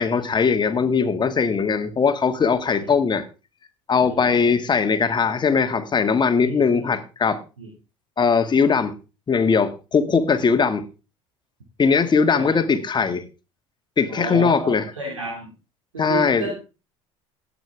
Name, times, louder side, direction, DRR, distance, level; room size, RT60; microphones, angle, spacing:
voice 1, 0.0-3.2 3.9-7.4 8.2-8.9 9.3-10.8 11.8-13.2 14.0-14.8 16.0-16.5, left 5 dB, 30° left, 2.0 m, -20 dB
voice 2, 4.1-4.5 6.4-6.6 7.6-7.7 11.8-12.0 12.3-12.6 14.1-15.5 15.9-16.5, right 3 dB, 90° right, 2.6 m, -31 dB
17.5 x 7.1 x 3.5 m
hypercardioid pair, 70°, 16 cm